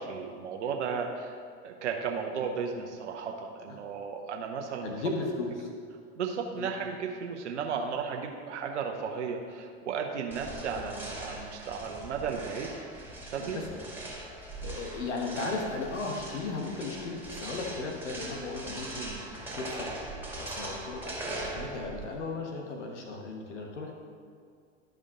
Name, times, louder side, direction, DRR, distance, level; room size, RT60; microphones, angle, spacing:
voice 1, 0.0-5.0 6.2-12.7 13.3-13.7 18.9-19.2, right 6 dB, 85° right, 2 dB, 0.8 m, -34 dB
voice 2, 4.8-5.7 6.5-6.7 13.4-13.7 14.4-19.0 19.3-19.9 20.4-23.9, left 3 dB, 85° left, 1 dB, 1.2 m, -36 dB
sound 1, 10.3-22.2, right 2 dB, 5° right, 2.1 m, -40 dB
11.5 x 5.1 x 3.7 m, 2.2 s
hypercardioid pair, 85°, 34 cm